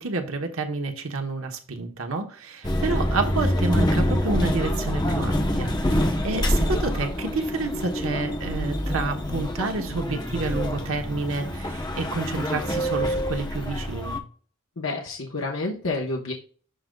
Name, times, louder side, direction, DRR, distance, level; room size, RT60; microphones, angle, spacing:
voice 1, 0.0-14.2, right 3 dB, 80° right, 1.1 m, -29 dB
sound 1, 2.6-14.2, equal, 20° left, 0.9 m, -26 dB
voice 2, 14.8-16.3, left 2 dB, 75° left, 1.1 m, -29 dB
11.5 x 5.1 x 2.3 m
head